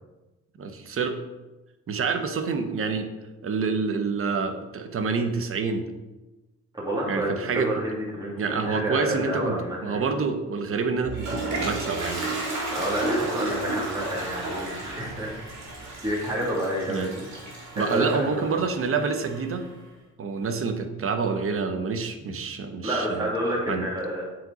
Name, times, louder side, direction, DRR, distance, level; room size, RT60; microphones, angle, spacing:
voice 1, 0.6-1.2 1.9-3.1 3.4-5.9 7.1-7.7 8.4-12.4 13.4-13.5 16.9-17.1 17.7-19.7 20.2-23.3 23.7-23.9, right 4 dB, 45° right, 7 dB, 0.9 m, -27 dB
voice 2, 6.7-10.0 12.7-15.4 16.0-17.2 17.7-18.5 22.2-22.3 22.8-24.2, right 1 dB, 15° right, -5 dB, 2.6 m, -29 dB
Toilet flush, 10.8-19.6, right 2 dB, 65° right, 2.4 m, -32 dB
7.5 x 4.9 x 4.0 m, 1.1 s
cardioid pair, 90°, 30 cm